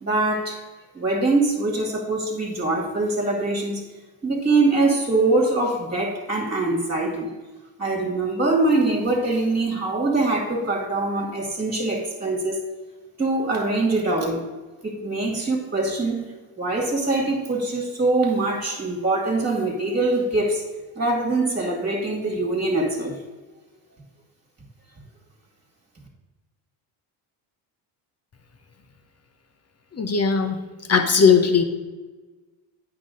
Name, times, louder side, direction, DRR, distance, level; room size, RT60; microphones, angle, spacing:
voice 1, 0.0-0.6 0.9-3.8 4.2-7.3 7.8-12.6 13.2-14.4 14.8-16.2 16.6-20.6 21.0-23.2, right 2 dB, 20° right, 0 dB, 2.3 m, -23 dB
voice 2, 29.9-30.6 30.9-31.6, left 6 dB, 30° left, 6 dB, 1.1 m, -18 dB
8.8 x 5.7 x 3.9 m, 1.3 s
supercardioid pair, 65°, 48 cm